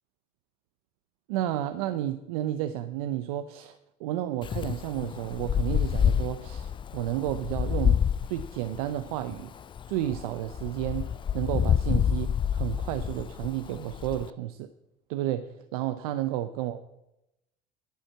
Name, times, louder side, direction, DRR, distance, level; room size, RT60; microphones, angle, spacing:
voice 1, 1.3-8.0 8.3-9.5 9.9-14.7 15.1-16.8, right 13 dB, 80° right, 10 dB, 0.6 m, -32 dB
Wind, 4.4-14.3, left 8 dB, 25° left, 0.3 m, -28 dB
10.5 x 7.8 x 7.4 m, 0.89 s
hypercardioid pair, 70°, 19 cm